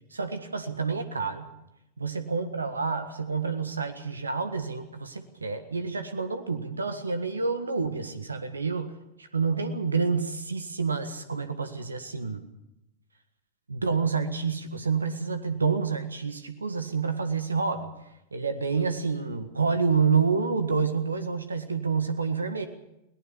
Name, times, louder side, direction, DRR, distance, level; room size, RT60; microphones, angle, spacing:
voice 1, 0.1-1.5 2.0-8.9 9.2-12.4 13.7-17.9 18.3-22.7, right 5 dB, 75° right, 10 dB, 1.6 m, -28 dB
21.5 x 18.5 x 7.1 m, 0.85 s
figure-of-eight pair, 90°, 0 cm